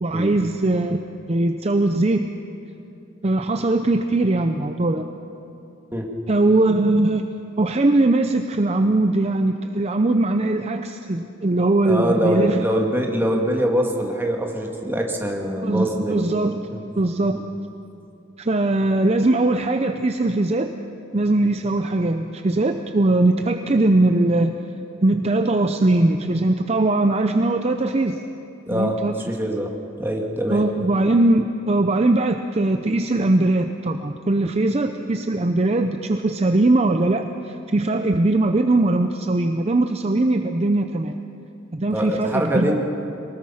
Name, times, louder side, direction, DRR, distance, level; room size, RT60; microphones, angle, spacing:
voice 1, 0.0-2.3 3.2-5.1 6.3-7.3 7.6-12.9 15.6-17.4 18.4-20.7 21.1-24.6 25.0-28.2 28.7-29.2 30.5-41.2 41.7-42.8, right 2 dB, 35° right, 7 dB, 0.6 m, -20 dB
voice 2, 11.8-16.3 16.7-16.8 17.2-17.4 28.7-30.6 41.9-42.8, equal, 10° right, 1 dB, 2.1 m, -24 dB
23.5 x 20.0 x 5.7 m, 2.8 s
head